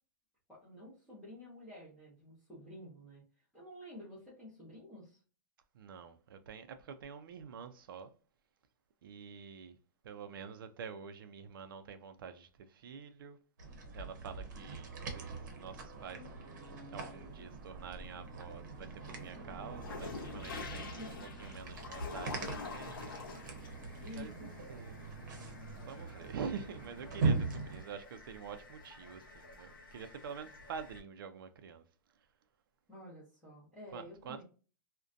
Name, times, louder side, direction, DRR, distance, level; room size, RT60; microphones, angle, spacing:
voice 1, 0.5-3.2 3.5-5.2 20.8-21.1 24.0-24.6 32.9-34.4, left 1 dB, 5° left, 0.6 m, -50 dB
voice 2, 5.7-8.1 9.0-9.8 10.0-13.4 13.9-16.3 16.9-23.8 24.2-25.5 25.8-31.8 33.9-34.4, right 6 dB, 80° right, 0.4 m, -47 dB
sound 1, 13.6-27.8, right 4 dB, 55° right, 0.7 m, -41 dB
sound 2, 17.3-18.3 18.7-31.0, left 4 dB, 75° left, 0.7 m, -48 dB
2.5 x 2.1 x 2.4 m
supercardioid pair, 180°, 11 cm